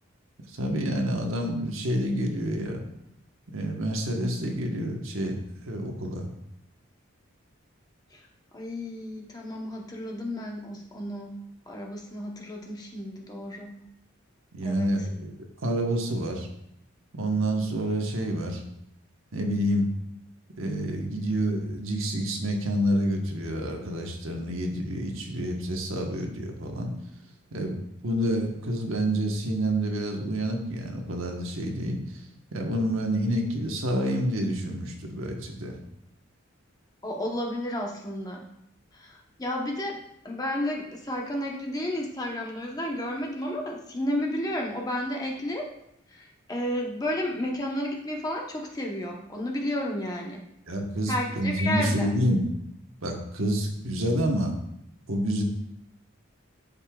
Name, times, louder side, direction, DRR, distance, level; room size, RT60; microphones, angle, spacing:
voice 1, 0.6-2.8 3.5-5.4 5.6-6.3 14.5-15.3 15.6-16.5 17.1-18.6 19.3-19.9 20.6-26.9 27.5-32.0 32.5-35.8 50.7-52.4 53.0-54.5 55.1-55.4, right 1 dB, 75° right, 2 dB, 1.2 m, -28 dB
voice 2, 8.5-11.3 11.7-13.7 14.6-14.9 37.0-38.5 38.9-45.7 46.1-50.4 51.1-52.1, left 1 dB, 20° left, 0 dB, 0.9 m, -32 dB
12.0 x 5.4 x 2.4 m, 0.78 s
head